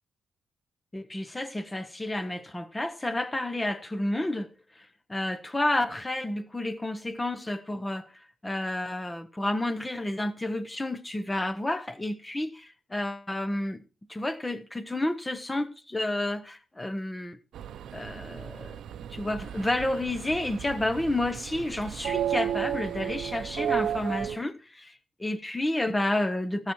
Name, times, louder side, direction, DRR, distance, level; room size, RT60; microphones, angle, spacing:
voice 1, 0.9-13.8 14.1-17.4 17.9-18.8 19.1-24.9 25.2-26.7, left 1 dB, 10° left, 0.8 m, -30 dB
sound 1, 17.5-24.4, right 10 dB, 80° right, 0.6 m, -33 dB
14.5 x 7.2 x 4.6 m
wide cardioid pair, 150°, 0 cm